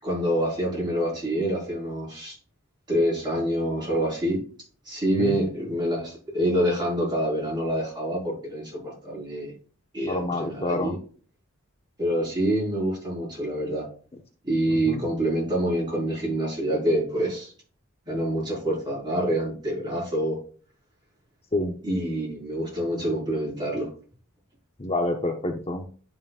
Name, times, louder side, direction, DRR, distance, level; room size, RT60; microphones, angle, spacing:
voice 1, 0.0-2.4 2.9-4.4 4.8-9.5 9.9-11.0 12.0-13.9 14.4-17.5 18.1-20.4 21.8-23.9, right 1 dB, 20° right, -5 dB, 4.2 m, -26 dB
voice 2, 10.0-10.9 14.7-15.0 21.5-21.7 24.8-25.9, left 2 dB, 30° left, 3 dB, 0.7 m, -28 dB
11.0 x 5.5 x 2.4 m, 0.42 s
head